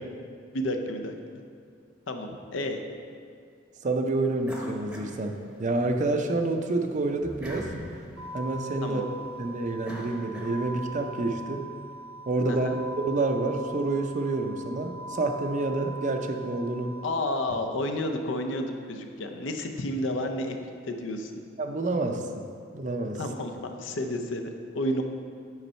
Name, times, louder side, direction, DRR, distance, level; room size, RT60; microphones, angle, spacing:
voice 1, 0.5-1.2 2.1-2.8 8.8-9.0 12.5-12.8 17.0-20.6 20.8-21.3 23.1-25.0, left 1 dB, 70° left, 5 dB, 0.6 m, -31 dB
voice 2, 3.8-7.7 8.3-9.0 9.4-11.7 12.3-12.7 13.0-17.0 21.6-22.4 22.7-23.2, right 2 dB, 40° right, 5 dB, 0.5 m, -28 dB
sound 1, 4.4-6.0 6.4-11.0, equal, 5° right, 0.8 m, -43 dB
sound 2, 8.2-17.2, right 2 dB, 85° right, 0.7 m, -41 dB
8.0 x 5.4 x 4.3 m, 2.2 s
head